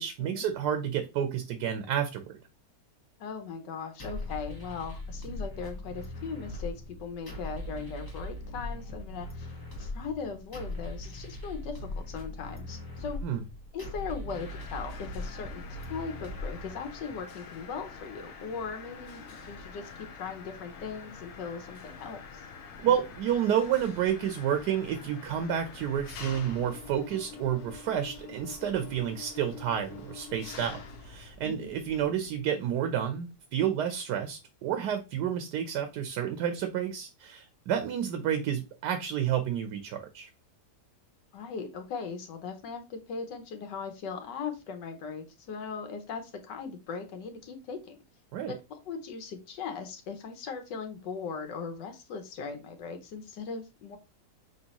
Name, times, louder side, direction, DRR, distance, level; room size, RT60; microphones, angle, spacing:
voice 1, 0.0-2.4 13.2-13.4 22.8-40.3 48.3-48.5, right 9 dB, 75° right, 8 dB, 1.2 m, -30 dB
voice 2, 3.2-9.5 9.8-13.2 13.7-22.4 31.4-31.7 41.3-48.0 48.5-54.0, left 5 dB, 85° left, 6 dB, 1.5 m, -39 dB
sound 1, 4.0-17.0, left 1 dB, 20° left, 0.7 m, -40 dB
Mechanisms, 14.3-32.4, left 5 dB, 65° left, 1.2 m, -46 dB
5.3 x 3.1 x 2.9 m, 0.26 s
omnidirectional pair, 1.8 m